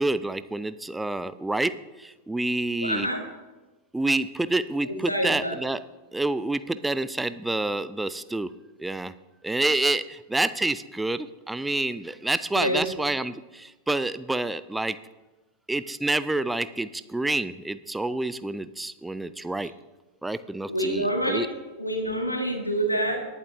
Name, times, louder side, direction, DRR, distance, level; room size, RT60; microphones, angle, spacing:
voice 1, 0.0-3.1 3.9-5.8 6.1-8.5 8.8-9.1 9.4-15.0 15.7-19.7 20.2-21.5, right 2 dB, 5° right, 14 dB, 0.5 m, -28 dB
voice 2, 2.8-3.2 4.8-5.6 12.5-12.9 20.7-21.5 21.8-23.3, right 1 dB, 85° left, 4 dB, 1.7 m, -27 dB
19.5 x 8.2 x 3.0 m, 1.2 s
figure-of-eight pair, 90°, 0 cm